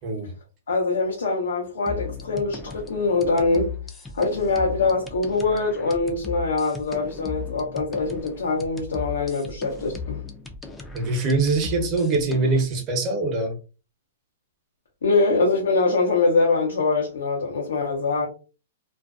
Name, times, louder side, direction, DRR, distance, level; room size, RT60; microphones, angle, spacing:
voice 1, 0.7-3.7 4.1-10.2 15.0-18.3, left 3 dB, 90° left, 0.7 m, -23 dB
sound 1, 1.9-12.6, left 5 dB, 10° left, 0.4 m, -37 dB
voice 2, 10.9-13.5, right 3 dB, 35° right, 0.8 m, -23 dB
2.5 x 2.1 x 2.4 m
hypercardioid pair, 140°, 0 cm